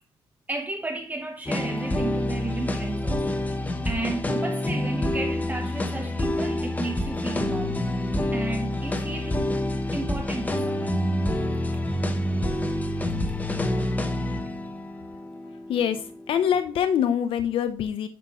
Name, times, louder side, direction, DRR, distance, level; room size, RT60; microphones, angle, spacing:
voice 1, 0.5-3.6 3.9-7.8 8.3-9.4 9.9-11.0, right 2 dB, 20° right, 0.9 m, -33 dB
sound 1, 1.5-16.7, left 1 dB, 15° left, 1.0 m, -27 dB
voice 2, 15.7-18.1, left 9 dB, 75° left, 0.6 m, -24 dB
10.0 x 5.6 x 3.0 m
cardioid pair, 115°, 9 cm